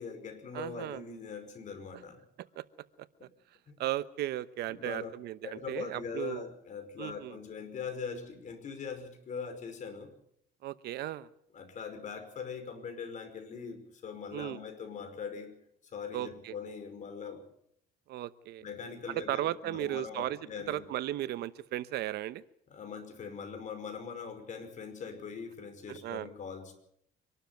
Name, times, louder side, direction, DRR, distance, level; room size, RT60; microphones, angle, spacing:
voice 1, 0.0-2.3 3.2-3.3 3.7-3.8 4.7-5.1 5.4-10.1 11.5-17.4 18.6-20.8 22.7-26.7, left 6 dB, 45° left, 7 dB, 5.4 m, -42 dB
voice 2, 0.5-1.0 2.6-2.7 3.0-3.3 3.8-6.5 7.0-7.4 10.6-11.3 14.3-14.6 16.1-16.5 18.1-18.6 19.1-20.4 20.7-22.4 25.9-26.3, right 14 dB, 75° right, 15 dB, 1.0 m, -36 dB
25.5 x 12.5 x 9.3 m, 0.73 s
cardioid pair, 110°, 17 cm